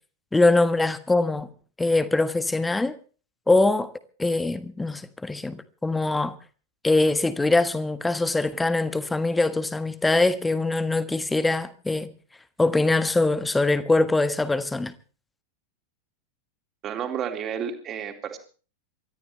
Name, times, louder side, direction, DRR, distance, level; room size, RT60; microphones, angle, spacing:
voice 1, 0.3-1.5 1.8-3.0 3.5-3.9 4.2-5.6 5.8-6.3 6.8-12.1 12.6-14.9, left 2 dB, 10° left, 1.5 m, -22 dB
voice 2, 16.8-18.4, right 8 dB, 30° right, 3.8 m, -31 dB
28.0 x 14.0 x 3.3 m
figure-of-eight pair, 90°, 0 cm